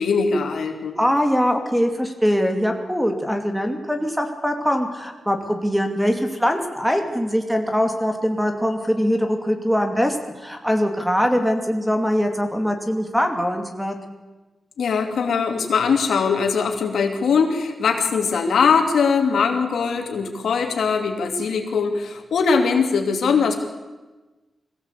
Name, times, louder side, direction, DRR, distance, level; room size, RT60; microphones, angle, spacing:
voice 1, 0.0-1.0 14.8-23.5, left 5 dB, 80° left, 4 dB, 2.9 m, -21 dB
voice 2, 1.0-14.0, equal, ahead, 5 dB, 2.7 m, -22 dB
22.5 x 16.5 x 8.4 m, 1.2 s
wide cardioid pair, 115°, 0 cm